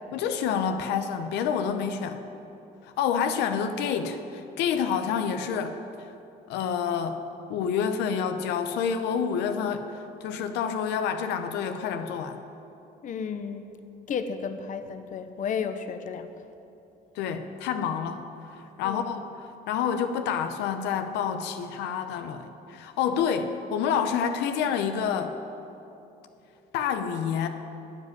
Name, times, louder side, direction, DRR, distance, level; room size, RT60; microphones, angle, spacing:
voice 1, 0.1-2.2 2.8-6.1 6.5-7.2 7.5-9.8 10.2-12.4 17.1-18.2 18.5-25.4 26.7-27.5, left 7 dB, 90° left, 7 dB, 0.8 m, -28 dB
voice 2, 13.0-13.7 14.1-16.3 18.8-19.2, left 6 dB, 50° left, 9 dB, 0.9 m, -33 dB
12.5 x 8.2 x 9.2 m, 2.9 s
cardioid pair, 110°, 17 cm